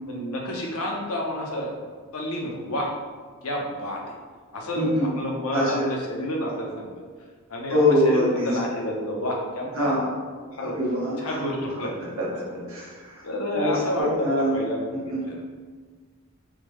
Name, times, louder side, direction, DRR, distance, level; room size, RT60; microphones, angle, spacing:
voice 1, 0.1-1.8 2.1-2.9 3.4-4.1 4.5-7.0 7.5-9.9 10.5-10.8 11.2-12.2 12.4-12.7 13.2-15.4, left 1 dB, 75° left, 0 dB, 0.6 m, -30 dB
voice 2, 4.7-5.1 5.5-5.9 7.7-8.5 9.8-10.1 10.8-11.5 12.2-12.3 12.7-13.2 13.5-14.6 15.1-15.2, left 1 dB, 65° right, -6 dB, 1.1 m, -23 dB
3.6 x 2.2 x 3.0 m, 1.5 s
head